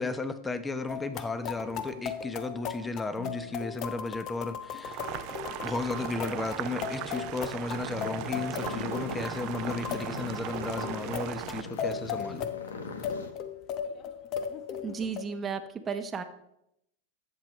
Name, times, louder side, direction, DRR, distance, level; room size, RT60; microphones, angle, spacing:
voice 1, 0.0-5.0 5.5-12.5, left 3 dB, 15° left, 0.8 m, -34 dB
sound 1, 0.9-15.2, left 7 dB, 45° left, 0.9 m, -37 dB
Boiling, 4.8-11.6, right 15 dB, 50° right, 0.5 m, -38 dB
sound 2, 7.7-13.3, left 4 dB, 85° left, 1.2 m, -41 dB
voice 2, 14.8-16.2, right 5 dB, 25° right, 0.9 m, -34 dB
13.0 x 7.4 x 3.1 m
hypercardioid pair, 105°, 0 cm